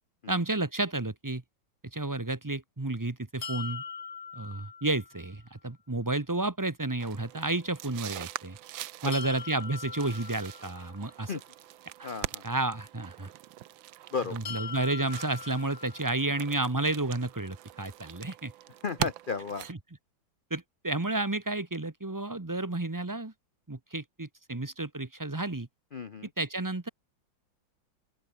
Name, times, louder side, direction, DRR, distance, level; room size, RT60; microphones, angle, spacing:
voice 1, 0.3-1.4 1.9-3.8 4.3-8.6 9.0-11.4 12.0-12.1 12.4-13.3 14.3-18.5 19.0-19.1 19.7-19.8 20.5-23.3 23.7-25.7 26.4-26.9, right 2 dB, 15° right, 0.8 m, -31 dB
sound 1, 3.4-5.4 9.1-11.2 14.5-16.5, left 6 dB, 40° left, 1.5 m, -42 dB
sound 2, 7.0-19.7, right 14 dB, 80° right, 1.5 m, -42 dB
voice 2, 12.0-12.4 14.1-14.4 18.8-19.7 25.9-26.3, left 5 dB, 85° left, 0.4 m, -34 dB
open air
omnidirectional pair, 2.1 m